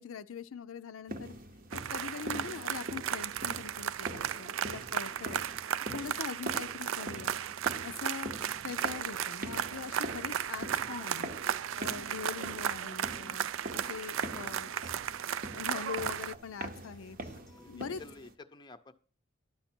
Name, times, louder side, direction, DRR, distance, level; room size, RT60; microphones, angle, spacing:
voice 1, 0.0-1.3 1.7-5.4 5.9-7.4 7.8-8.3 8.6-11.3 11.8-13.5 13.7-15.0 15.5-17.2 17.7-18.0, left 6 dB, 80° left, 0.5 m, -42 dB
sound 1, 1.1-18.3, right 2 dB, 45° right, 0.8 m, -44 dB
sound 2, 1.7-16.3, right 9 dB, 70° right, 0.3 m, -35 dB
Acoustic guitar, 1.8-17.8, equal, ahead, 0.9 m, -64 dB
voice 2, 4.8-5.3 8.3-8.4 12.1-12.3 17.5-17.7 18.0-18.9, left 3 dB, 20° left, 0.6 m, -52 dB
11.0 x 7.0 x 4.4 m
head